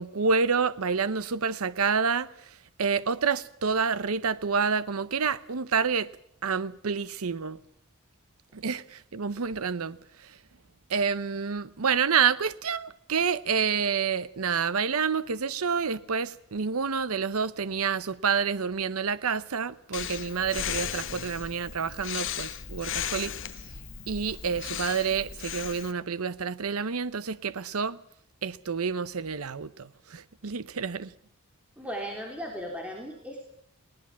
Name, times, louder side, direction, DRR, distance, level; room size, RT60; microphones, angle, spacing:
voice 1, 0.0-2.3 2.8-6.1 6.4-7.6 8.5-10.0 10.9-23.3 24.1-28.0 28.4-31.1, right 6 dB, 80° right, 0.8 m, -28 dB
Breathing, 19.9-25.9, left 9 dB, 60° left, 1.3 m, -36 dB
voice 2, 31.8-33.4, equal, 5° right, 3.4 m, -36 dB
19.5 x 19.0 x 7.5 m
head